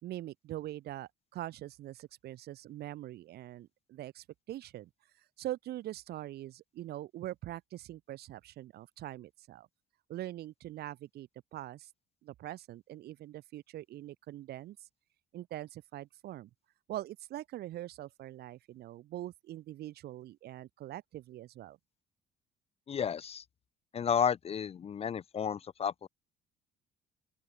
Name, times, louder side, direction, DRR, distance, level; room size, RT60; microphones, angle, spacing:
voice 1, 0.0-4.9 5.1-9.7 10.1-11.9 12.2-14.9 15.3-16.5 16.9-21.8, right 14 dB, 70° right, 3.5 m, -43 dB
voice 2, 22.9-23.4 23.9-26.1, left 7 dB, 35° left, 0.7 m, -32 dB
open air
cardioid pair, 110°, 17 cm